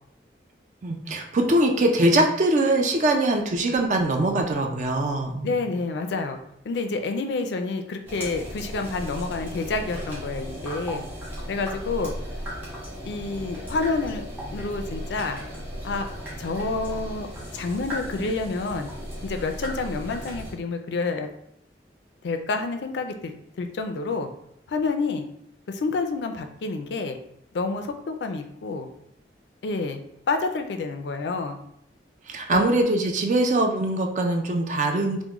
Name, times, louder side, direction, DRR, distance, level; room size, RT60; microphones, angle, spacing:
voice 1, 0.8-5.5 32.3-35.2, right 1 dB, 45° right, 3 dB, 0.4 m, -22 dB
voice 2, 5.4-6.4 6.6-11.0 11.5-12.1 13.0-14.2 14.5-15.4 15.8-16.1 16.4-17.3 17.5-18.9 19.2-21.3 22.2-24.3 24.7-25.2 25.7-27.2 27.5-28.9 29.6-30.0 30.3-31.6 32.5-32.7, left 3 dB, 75° left, 6 dB, 0.4 m, -28 dB
sound 1, 8.1-20.5, equal, 10° right, 1.1 m, -36 dB
3.5 x 2.1 x 3.0 m, 0.73 s
head